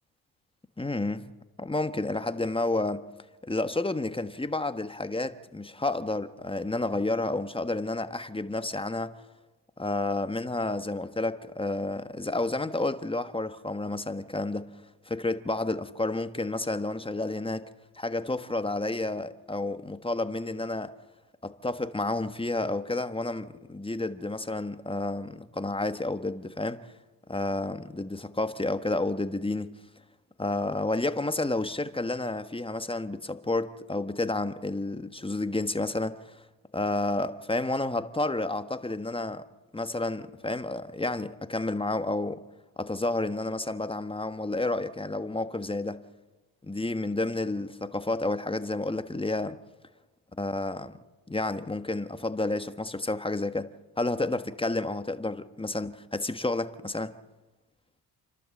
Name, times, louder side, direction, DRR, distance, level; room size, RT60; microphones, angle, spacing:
voice 1, 0.8-1.3 1.6-3.0 3.4-9.1 9.8-14.7 15.1-17.7 18.0-20.9 21.4-26.8 27.3-29.7 30.4-36.4 36.7-39.4 39.7-42.4 42.8-46.0 46.6-49.6 50.4-50.9 51.3-53.7 54.0-57.1, left 2 dB, 10° left, 1.3 m, -30 dB
29.5 x 12.0 x 7.7 m
supercardioid pair, 65°, 45 cm